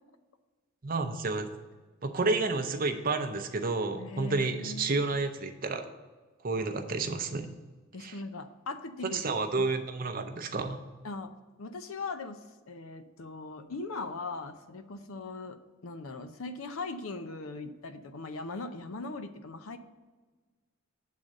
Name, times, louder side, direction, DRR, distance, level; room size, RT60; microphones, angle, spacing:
voice 1, 0.8-1.5 2.0-5.8 6.4-7.5 8.0-8.2 9.1-10.8, right 3 dB, 45° right, 6 dB, 0.6 m, -30 dB
voice 2, 3.9-5.1 7.9-9.7 11.0-11.3 11.6-19.8, left 3 dB, 80° left, 10 dB, 0.6 m, -40 dB
7.4 x 3.9 x 6.3 m, 1.3 s
head